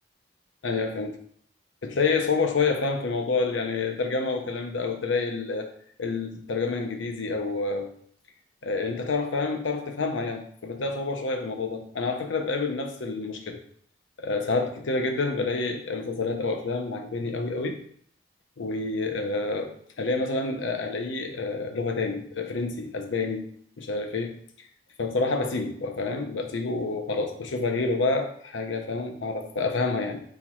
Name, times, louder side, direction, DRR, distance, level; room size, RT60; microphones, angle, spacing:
voice 1, 0.6-1.2 1.8-7.9 8.6-13.6 14.2-17.8 18.6-23.5 23.8-24.4 25.0-30.2, left 3 dB, 75° left, 4 dB, 0.6 m, -28 dB
4.4 x 4.3 x 2.3 m, 0.63 s
head